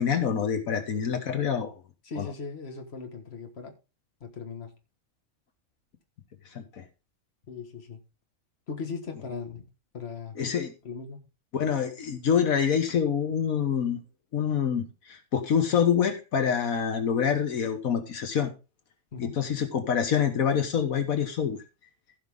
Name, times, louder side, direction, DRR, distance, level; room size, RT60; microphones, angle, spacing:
voice 1, 0.0-1.7 2.2-2.3 6.5-6.8 10.4-10.7 11.5-14.0 14.3-18.5 19.2-21.6, left 7 dB, 85° left, 1.6 m, -26 dB
voice 2, 2.0-3.7 4.2-4.7 7.5-8.0 8.7-9.7 9.9-10.5 10.8-11.2 19.1-19.4, left 5 dB, 50° left, 1.8 m, -38 dB
15.5 x 5.7 x 3.6 m
omnidirectional pair, 1.4 m